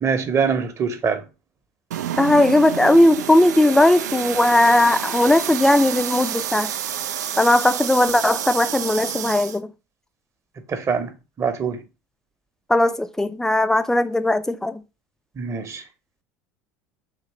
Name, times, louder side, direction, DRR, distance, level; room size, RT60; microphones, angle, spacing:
voice 1, 0.0-1.3 10.7-11.8 15.4-15.8, right 6 dB, 30° right, 0.9 m, -24 dB
sound 1, 1.9-9.6, right 10 dB, 75° right, 0.4 m, -29 dB
voice 2, 2.2-6.7 7.4-9.7 12.7-14.8, left 1 dB, 5° left, 0.4 m, -18 dB
3.7 x 3.1 x 4.3 m
figure-of-eight pair, 70°, 9 cm